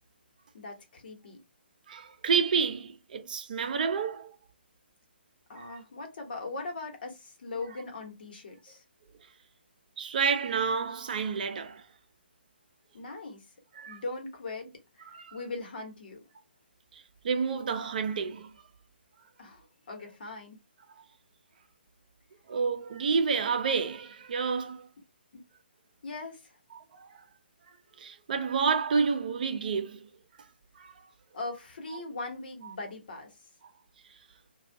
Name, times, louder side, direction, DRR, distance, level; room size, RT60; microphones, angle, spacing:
voice 1, 0.5-1.4 5.5-8.8 12.9-13.4 13.9-14.7 15.0-16.2 19.4-20.6 25.3-25.4 26.0-26.6 31.3-33.3, left 3 dB, 60° left, 1.1 m, -40 dB
voice 2, 1.9-4.3 5.6-5.8 10.0-11.8 13.8-14.0 15.1-15.4 16.9-18.5 22.5-24.9 26.7-27.1 28.0-30.0 30.8-30.9, right 5 dB, 50° right, 0.5 m, -29 dB
2.5 x 2.3 x 3.4 m
figure-of-eight pair, 140°, 6 cm